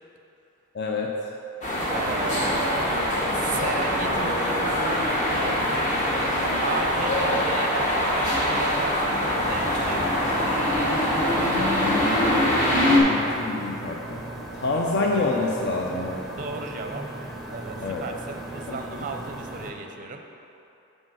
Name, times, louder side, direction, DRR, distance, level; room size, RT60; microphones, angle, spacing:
voice 1, 0.7-1.1 12.8-14.2 14.6-16.2 17.8-18.0 18.7-18.8, left 3 dB, 50° left, 0 dB, 0.5 m, -27 dB
sound 1, 1.6-13.0, left 1 dB, 35° left, 1.3 m, -23 dB
voice 2, 1.9-2.9 3.3-10.2 16.4-17.0 17.5-20.2, right 4 dB, 35° right, 4 dB, 0.5 m, -35 dB
sound 2, 9.4-19.7, right 1 dB, ahead, 0.7 m, -38 dB
6.5 x 4.9 x 6.2 m, 2.8 s
head